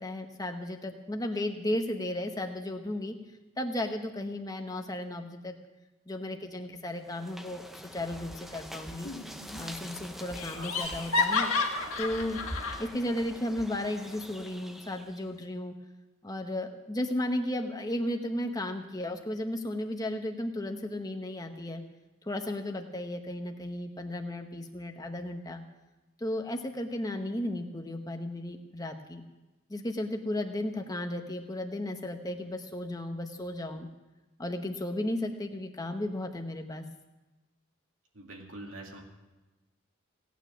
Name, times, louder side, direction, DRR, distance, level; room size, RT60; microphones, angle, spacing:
voice 1, 0.0-3.2 3.6-5.6 6.1-9.1 9.6-11.5 12.0-12.4 12.8-15.7 16.2-21.8 22.2-25.6 26.2-29.2 29.7-33.9 34.4-36.8, left 1 dB, 15° left, 4 dB, 0.9 m, -34 dB
sound 1, 7.0-15.4, equal, ahead, 0.6 m, -45 dB
Laughter, 9.0-9.6 9.9-10.0 10.4-12.8, left 4 dB, 70° left, 1.8 m, -30 dB
voice 2, 38.1-39.0, right 2 dB, 65° right, 0 dB, 2.4 m, -44 dB
17.5 x 9.2 x 6.3 m, 1.1 s
head